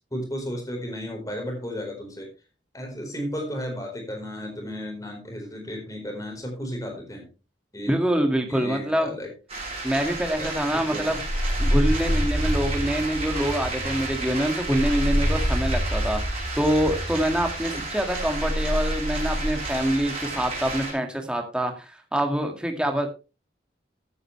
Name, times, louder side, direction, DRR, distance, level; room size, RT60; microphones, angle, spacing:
voice 1, 0.1-2.3 2.7-7.3 7.7-7.9 8.5-9.3 10.4-11.2, equal, 20° left, 2 dB, 4.4 m, -34 dB
voice 2, 7.9-9.1 9.8-11.2 11.6-23.1, right 1 dB, 5° right, 4 dB, 2.0 m, -25 dB
sound 1, 9.5-20.9, right 1 dB, 30° right, 6.2 m, -27 dB
14.5 x 9.7 x 3.3 m, 0.30 s
head